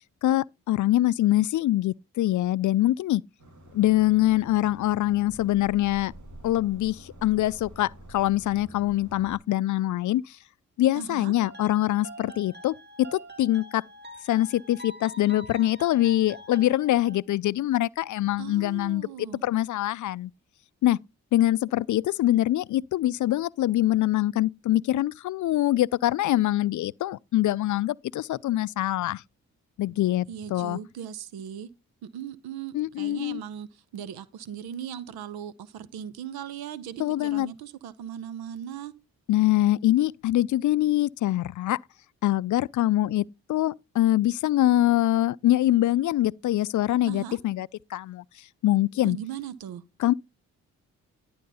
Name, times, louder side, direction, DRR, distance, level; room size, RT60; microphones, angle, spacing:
voice 1, 0.2-3.2 3.7-6.1 6.4-10.4 10.8-13.8 14.2-19.1 19.4-20.3 20.8-21.0 21.3-29.2 29.8-30.3 30.5-30.8 32.7-33.4 37.0-37.5 39.3-41.8 42.2-48.2 48.6-49.2 50.0-50.1, left 14 dB, 55° left, 0.4 m, -24 dB
sound 1, 3.4-9.4, equal, 50° right, 2.7 m, -47 dB
voice 2, 10.9-11.3 18.4-19.4 30.3-31.7 32.0-38.9 47.1-47.4 49.0-49.8, right 9 dB, 75° right, 0.8 m, -38 dB
sound 2, 11.4-17.2, equal, 25° right, 2.5 m, -45 dB
11.5 x 3.8 x 5.5 m
hypercardioid pair, 40°, 37 cm